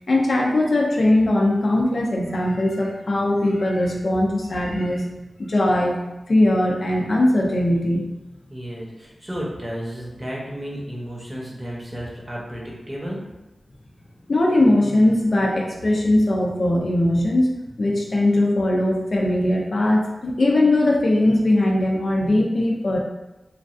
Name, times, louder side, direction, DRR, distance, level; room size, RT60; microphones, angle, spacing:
voice 1, 0.1-5.1 5.4-6.0 6.3-8.1 14.3-17.5 17.8-23.0, left 1 dB, 60° left, -1 dB, 0.5 m, -20 dB
voice 2, 8.5-13.2, equal, 25° right, -4 dB, 0.8 m, -32 dB
3.0 x 2.4 x 2.5 m, 1.0 s
wide cardioid pair, 60°, 0 cm